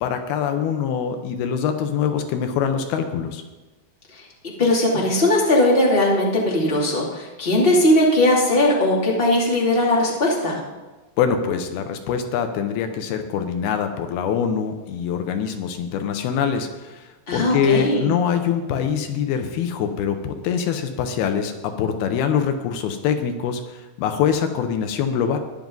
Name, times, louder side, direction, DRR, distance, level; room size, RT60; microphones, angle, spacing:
voice 1, 0.0-3.4 11.2-25.4, left 7 dB, 85° left, 7 dB, 2.9 m, -24 dB
voice 2, 4.6-10.6 17.3-18.1, left 1 dB, 15° left, -4 dB, 2.3 m, -19 dB
14.5 x 11.0 x 3.9 m, 1.2 s
omnidirectional pair, 4.4 m